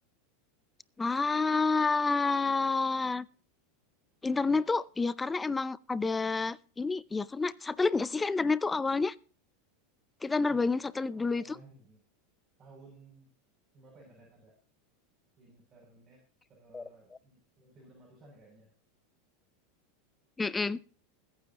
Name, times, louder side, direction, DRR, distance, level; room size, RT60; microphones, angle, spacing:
voice 1, 1.0-3.3 4.2-9.1 10.2-11.4 16.7-16.8 20.4-20.8, left 4 dB, 15° left, 20 dB, 0.5 m, -29 dB
voice 2, 4.3-4.6 10.5-10.6 11.1-12.0 12.6-13.3 13.7-14.5 15.4-16.2 16.5-18.7, right 2 dB, 30° right, -3 dB, 7.4 m, -57 dB
21.5 x 9.8 x 3.0 m, 0.39 s
hypercardioid pair, 105°, 0 cm